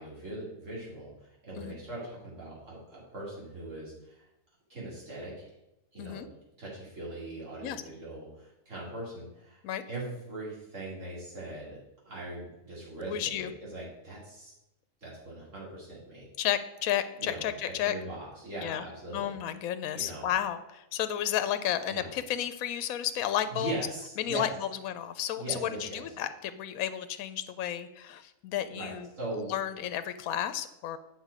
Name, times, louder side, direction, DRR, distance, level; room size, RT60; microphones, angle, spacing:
voice 1, 0.0-4.3 4.7-5.5 5.9-6.2 6.6-9.6 9.9-11.8 12.1-14.5 15.0-16.3 17.2-17.5 17.8-19.3 19.9-20.3 21.9-22.1 23.5-24.5 25.4-26.1 28.7-29.5, right 2 dB, 60° right, -6 dB, 3.6 m, -40 dB
voice 2, 13.1-13.5 16.4-17.9 18.6-18.8 19.1-23.7 24.2-24.5 24.8-29.1 29.5-31.0, left 11 dB, 80° left, 11 dB, 1.0 m, -32 dB
8.2 x 5.9 x 4.9 m, 0.92 s
omnidirectional pair, 1.5 m